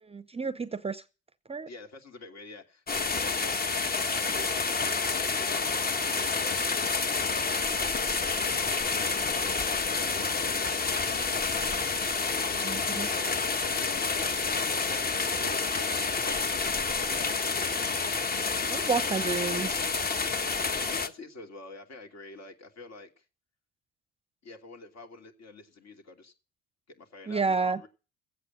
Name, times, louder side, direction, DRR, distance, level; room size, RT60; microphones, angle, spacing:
voice 1, 0.0-1.0 1.5-1.7 12.5-13.1 18.7-19.9 27.3-27.8, right 4 dB, 20° right, 0.7 m, -30 dB
voice 2, 1.7-3.9 4.3-9.3 9.6-11.7 12.2-17.5 20.6-23.3 24.4-26.3 26.9-27.9, left 3 dB, 50° left, 2.8 m, -49 dB
sound 1, 2.9-21.1, left 4 dB, 30° left, 1.3 m, -29 dB
15.5 x 8.3 x 7.6 m
hypercardioid pair, 55°, 33 cm